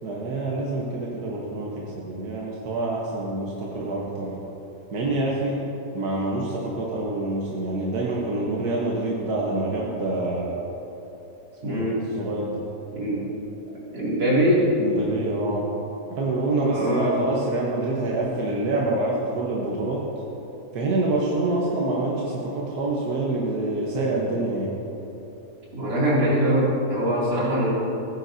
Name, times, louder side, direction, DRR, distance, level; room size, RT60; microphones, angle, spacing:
voice 1, 0.0-4.3 4.9-5.6 5.9-10.6 11.6-12.6 14.8-15.7 16.1-20.1 20.7-24.7, right 2 dB, 70° right, -4 dB, 1.6 m, -26 dB
voice 2, 11.6-12.0 12.9-13.3 13.9-14.8 16.7-17.1 25.7-27.7, equal, 85° right, -7 dB, 3.3 m, -22 dB
16.5 x 9.3 x 2.7 m, 3.0 s
omnidirectional pair, 1.8 m